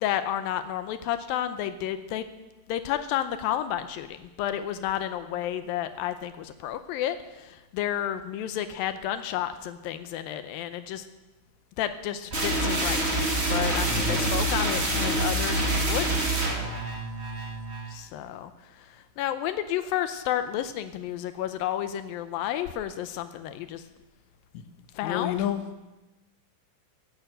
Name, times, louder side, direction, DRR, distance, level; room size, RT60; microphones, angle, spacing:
voice 1, 0.0-2.3 2.7-11.0 11.8-16.4 17.9-18.5 18.8-18.9 19.2-23.8 25.0-25.4, left 11 dB, 85° left, 10 dB, 2.5 m, -31 dB
sound 1, 12.3-17.9, right 1 dB, 25° right, 1.8 m, -26 dB
voice 2, 13.7-14.4 14.8-15.5 24.5-24.6 25.0-25.8, left 9 dB, 65° left, 7 dB, 2.0 m, -33 dB
16.5 x 9.2 x 7.8 m, 1.1 s
omnidirectional pair, 4.2 m